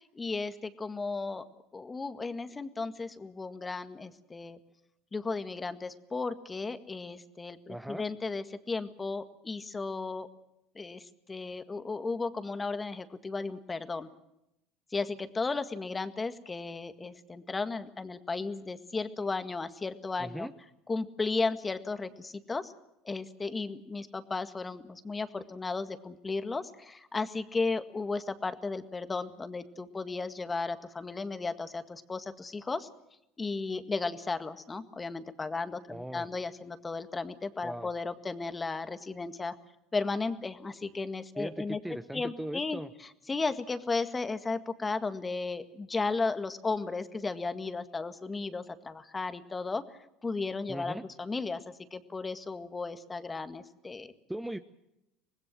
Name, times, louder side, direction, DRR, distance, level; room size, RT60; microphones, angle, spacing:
voice 1, 0.0-1.5 1.7-4.6 5.1-10.3 10.8-14.1 14.9-20.5 20.9-22.7 23.1-32.9 33.4-39.6 39.9-41.8 42.1-49.8 50.2-54.1, left 3 dB, 20° left, 11 dB, 1.9 m, -35 dB
voice 2, 7.7-8.0 20.2-20.5 35.9-36.3 37.6-37.9 41.4-42.9 50.7-51.1 54.3-54.6, right 1 dB, 5° right, 9 dB, 1.0 m, -38 dB
25.0 x 20.0 x 7.6 m, 0.85 s
hypercardioid pair, 70°, 0 cm